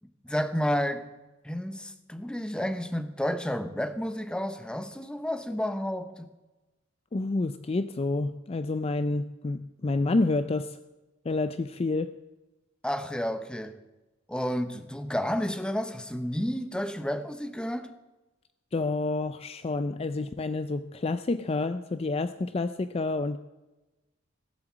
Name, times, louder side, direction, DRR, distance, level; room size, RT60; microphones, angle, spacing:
voice 1, 0.2-1.1 1.4-6.3 12.8-13.8 14.3-17.9, equal, 5° left, 0.8 m, -31 dB
voice 2, 7.1-10.8 11.2-12.1 18.7-23.4, left 3 dB, 30° left, 0.4 m, -29 dB
17.0 x 7.8 x 7.3 m
head